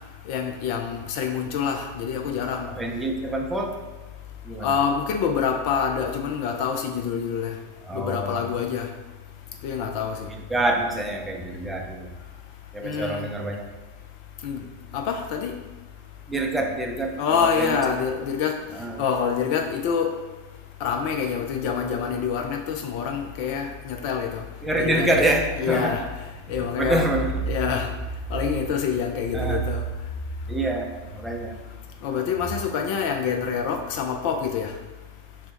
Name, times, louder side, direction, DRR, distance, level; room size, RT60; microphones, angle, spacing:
voice 1, 0.3-2.7 4.6-7.5 7.9-8.9 9.6-10.3 12.8-13.3 14.4-14.6 14.9-15.5 17.2-18.6 19.0-20.1 20.8-24.4 24.8-25.2 25.6-26.0 26.5-27.1 27.5-27.9 28.3-29.8 32.0-34.7, left 7 dB, 45° left, 5 dB, 0.4 m, -26 dB
voice 2, 2.7-3.8 4.4-4.7 7.8-8.4 10.5-12.1 12.7-13.6 16.3-17.8 18.7-19.0 24.6-26.1 26.8-27.5 29.3-29.6 30.5-31.6, right 2 dB, 10° right, 1 dB, 0.5 m, -26 dB
4.2 x 2.1 x 4.3 m, 1.2 s
figure-of-eight pair, 90°, 0 cm